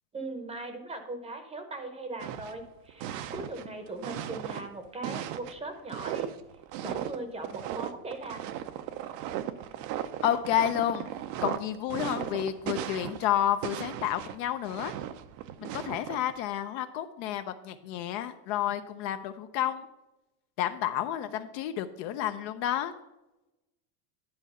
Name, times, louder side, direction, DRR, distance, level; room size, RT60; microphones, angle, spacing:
voice 1, 0.1-6.3 6.8-8.4, right 2 dB, 10° right, 6 dB, 0.8 m, -39 dB
sound 1, 2.2-4.7 5.0-13.4 13.6-16.3, right 11 dB, 80° right, 0.8 m, -37 dB
voice 2, 10.2-11.1 11.4-14.9 15.6-19.9 20.6-22.9, left 11 dB, 50° left, 9 dB, 0.6 m, -30 dB
10.5 x 4.6 x 5.4 m, 0.96 s
cardioid pair, 160°, 49 cm